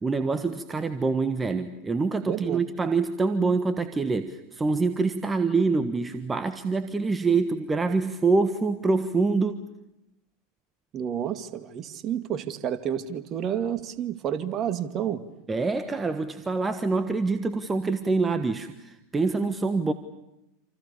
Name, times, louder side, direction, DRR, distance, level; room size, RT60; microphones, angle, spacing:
voice 1, 0.0-9.6 15.5-19.9, right 4 dB, 15° right, 9 dB, 1.5 m, -25 dB
voice 2, 2.3-2.6 10.9-15.2, right 9 dB, 40° right, 9 dB, 2.1 m, -30 dB
28.0 x 28.0 x 7.1 m, 0.91 s
hypercardioid pair, 85°, 0 cm